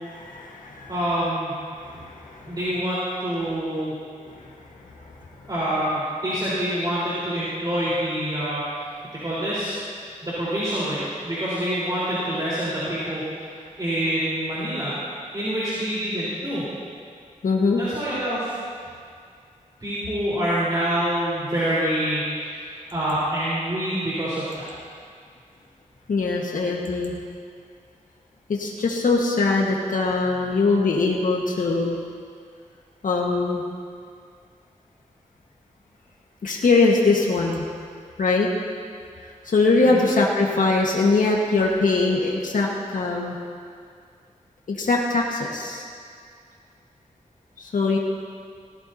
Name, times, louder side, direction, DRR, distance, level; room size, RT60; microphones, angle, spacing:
voice 1, 0.1-0.9 1.8-2.6 4.3-5.5 17.4-17.8 26.1-27.1 28.5-32.0 33.0-33.6 36.4-37.6 38.2-38.5 39.4-43.3 44.7-45.8 47.6-48.0, left 3 dB, 85° left, -2 dB, 1.5 m, -22 dB
voice 2, 0.9-1.5 2.5-3.9 5.5-8.6 9.1-9.8 10.2-15.0 15.3-16.6 17.8-18.5 19.8-22.6 22.9-24.5 39.8-40.1, equal, 30° right, -11 dB, 4.1 m, -26 dB
19.0 x 15.0 x 2.8 m, 2.2 s
wide cardioid pair, 70°, 14 cm